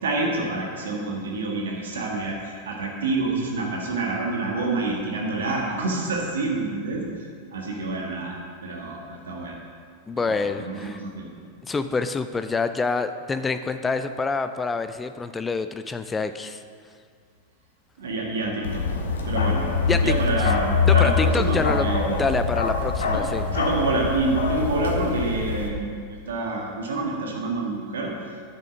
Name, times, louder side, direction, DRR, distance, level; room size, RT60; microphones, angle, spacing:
voice 1, 0.0-8.3 8.6-9.6 10.3-11.3 18.0-18.8 19.3-22.2 23.1-23.2 23.5-28.1, right 3 dB, 65° right, -1 dB, 1.7 m, -27 dB
voice 2, 10.1-11.0 11.6-16.6 19.9-20.1 20.8-21.9 22.2-23.5, left 4 dB, 15° left, 10 dB, 0.5 m, -26 dB
Bark, 18.6-25.7, left 5 dB, 65° left, 1.2 m, -24 dB
10.5 x 8.3 x 6.2 m, 2.1 s
figure-of-eight pair, 90°, 0 cm